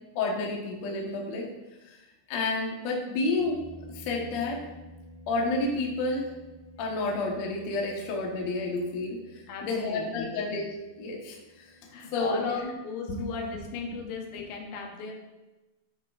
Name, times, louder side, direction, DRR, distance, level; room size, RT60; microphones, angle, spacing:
voice 1, 0.2-1.5 1.9-2.0 2.3-3.6 3.9-4.6 5.3-6.3 6.8-10.6 11.0-11.7 12.1-12.7 13.1-13.2, left 3 dB, 60° left, -1 dB, 1.9 m, -30 dB
sound 1, 3.4-12.4, equal, 65° right, 4.1 m, -51 dB
voice 2, 9.5-10.3 11.9-15.1, left 4 dB, 85° left, 1 dB, 3.2 m, -36 dB
11.0 x 6.6 x 2.5 m, 1.1 s
omnidirectional pair, 4.9 m